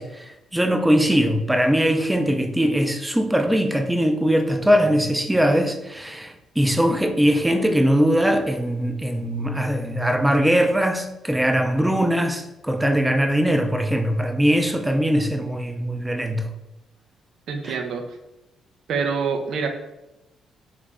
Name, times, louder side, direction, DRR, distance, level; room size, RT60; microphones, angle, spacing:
voice 1, 0.0-16.5 17.6-17.8, equal, 5° right, 5 dB, 0.4 m, -21 dB
voice 2, 17.5-18.0 18.9-19.7, right 5 dB, 70° right, 4 dB, 0.4 m, -25 dB
3.1 x 2.5 x 3.4 m, 0.96 s
cardioid pair, 90°, 0 cm